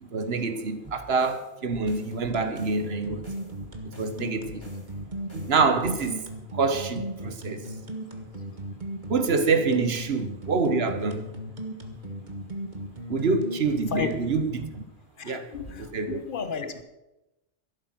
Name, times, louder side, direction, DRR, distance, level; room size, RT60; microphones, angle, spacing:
voice 1, 0.0-3.3 3.8-4.6 5.3-7.6 9.1-11.2 13.1-14.8 15.2-15.5 15.9-16.2, right 4 dB, 70° right, 1.5 m, -26 dB
sound 1, 0.8-6.3, equal, 10° right, 6.6 m, -49 dB
sound 2, 1.9-14.7, right 1 dB, 45° right, 1.8 m, -36 dB
voice 2, 15.2-16.8, left 7 dB, 50° left, 1.3 m, -33 dB
12.5 x 11.5 x 6.2 m
omnidirectional pair, 1.1 m